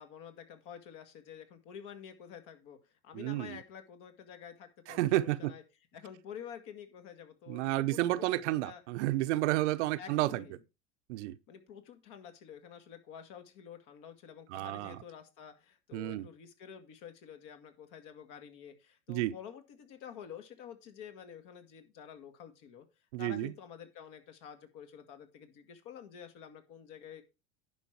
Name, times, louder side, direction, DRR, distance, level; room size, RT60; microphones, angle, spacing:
voice 1, 0.0-2.8 3.0-5.6 5.9-8.8 10.0-10.6 11.5-22.9 23.2-27.2, left 8 dB, 50° left, 2.1 m, -49 dB
voice 2, 3.1-3.6 4.9-5.5 7.5-10.4 11.1-11.4 14.5-15.0 15.9-16.3 19.1-19.3 23.1-23.5, right 16 dB, 60° right, 0.8 m, -31 dB
10.5 x 5.4 x 4.7 m
hypercardioid pair, 95°, 38 cm